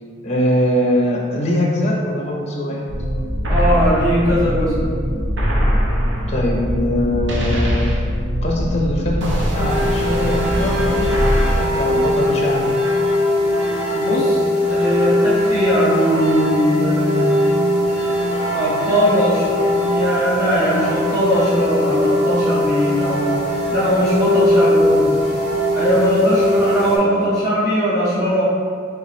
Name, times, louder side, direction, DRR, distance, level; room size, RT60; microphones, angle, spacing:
voice 1, 0.2-2.8 5.1-5.2 5.5-5.6 6.3-7.9 8.4-12.7, left 1 dB, 35° left, -2 dB, 0.5 m, -22 dB
sound 1, 2.9-11.6, equal, 70° right, 0.7 m, -21 dB
voice 2, 3.5-4.7 13.9-14.4 14.7-17.2 18.5-19.6 19.9-23.4 23.7-25.2 25.7-28.4, equal, 15° right, -11 dB, 1.3 m, -19 dB
sound 2, 9.5-27.0, left 1 dB, 40° right, 1.0 m, -20 dB
3.4 x 3.0 x 4.3 m, 2.3 s
head